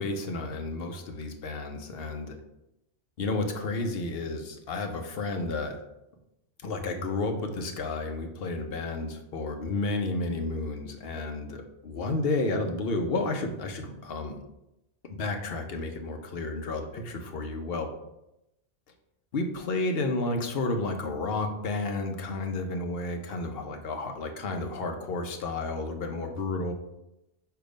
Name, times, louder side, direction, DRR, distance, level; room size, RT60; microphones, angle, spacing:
voice 1, 0.0-2.4 3.2-5.8 6.6-14.4 15.1-17.9 19.3-26.7, left 2 dB, 60° left, 5 dB, 0.9 m, -31 dB
6.9 x 2.8 x 5.0 m, 0.90 s
omnidirectional pair, 1.2 m